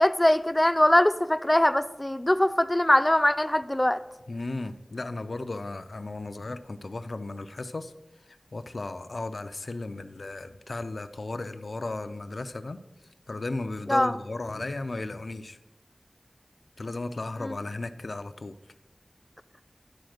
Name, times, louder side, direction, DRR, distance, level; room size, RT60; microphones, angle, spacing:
voice 1, 0.0-4.0 13.9-14.1 17.4-17.5, left 1 dB, 20° left, 12 dB, 0.4 m, -22 dB
voice 2, 4.3-7.9 8.5-12.8 13.3-15.6 16.8-18.5, left 2 dB, 85° left, 9 dB, 0.4 m, -35 dB
10.5 x 4.2 x 6.4 m, 0.97 s
wide cardioid pair, 45°, 0 cm